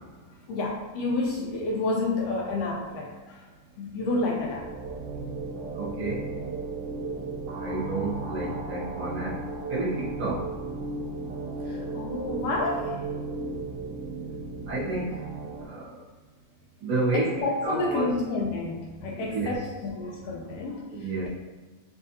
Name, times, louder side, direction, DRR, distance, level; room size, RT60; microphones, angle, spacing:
voice 1, 0.5-3.4 3.8-4.7 11.6-12.9 17.1-20.9, left 2 dB, 80° left, -1 dB, 1.4 m, -29 dB
sound 1, 4.1-15.6, right 3 dB, 85° right, 1.3 m, -35 dB
voice 2, 5.7-6.3 7.6-9.4 9.7-10.5 14.7-15.2 15.6-15.9 16.8-18.2 19.2-19.7 20.9-21.3, right 2 dB, 60° right, -8 dB, 1.4 m, -30 dB
6.2 x 2.5 x 2.7 m, 1.3 s
omnidirectional pair, 3.3 m